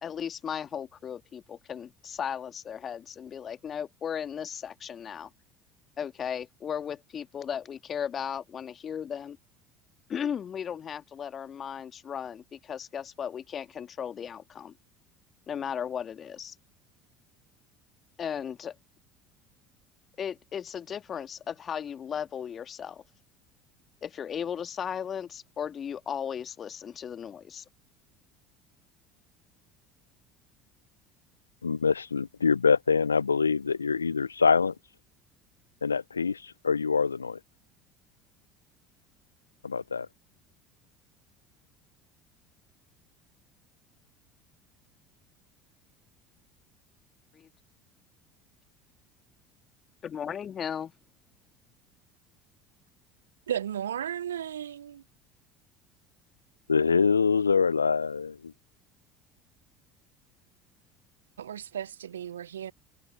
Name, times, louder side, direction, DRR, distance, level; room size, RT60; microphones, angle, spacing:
voice 1, 0.0-5.3 6.0-9.4 10.1-14.7 15.5-16.5 18.2-18.7 20.2-23.0 24.0-27.6 47.3-47.5 50.0-50.9, left 8 dB, 35° left, 1.7 m, -36 dB
voice 2, 31.6-34.7 35.8-37.4 39.6-40.1 56.7-58.5, left 5 dB, 85° left, 0.4 m, -25 dB
voice 3, 53.5-55.0 61.4-62.7, right 10 dB, 80° right, 0.6 m, -34 dB
figure-of-eight pair, 65°, 0 cm